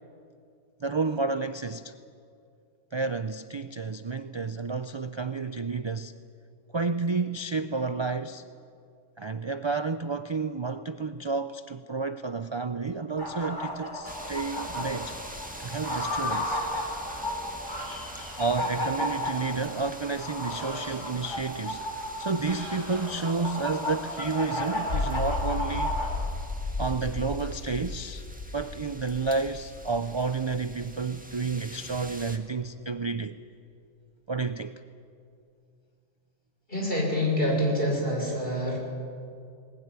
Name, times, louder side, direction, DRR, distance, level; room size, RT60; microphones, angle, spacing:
voice 1, 0.8-1.9 2.9-6.1 6.7-8.4 9.2-15.1 15.6-16.6 18.4-26.0 26.8-28.2 28.5-33.4 34.3-34.8, right 4 dB, 35° right, 0.4 m, -31 dB
sound 1, 13.2-26.1, left 1 dB, 20° left, 4.3 m, -33 dB
sound 2, 14.0-32.4, right 1 dB, 5° right, 1.7 m, -46 dB
sound 3, 24.8-31.2, left 3 dB, 70° left, 2.6 m, -34 dB
voice 2, 36.7-38.8, left 1 dB, 50° left, 6.1 m, -26 dB
20.5 x 20.0 x 9.6 m
omnidirectional pair, 1.3 m